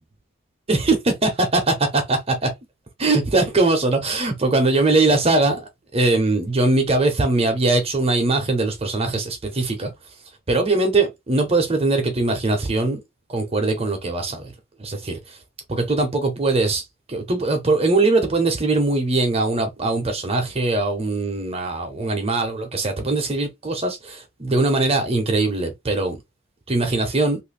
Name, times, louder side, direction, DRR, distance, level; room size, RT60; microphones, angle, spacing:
voice 1, 0.7-2.5 3.0-9.9 10.5-13.0 13.3-14.5 14.8-15.4 15.7-26.2 26.7-27.4, right 2 dB, 30° right, 0.7 m, -21 dB
3.0 x 2.5 x 3.2 m
head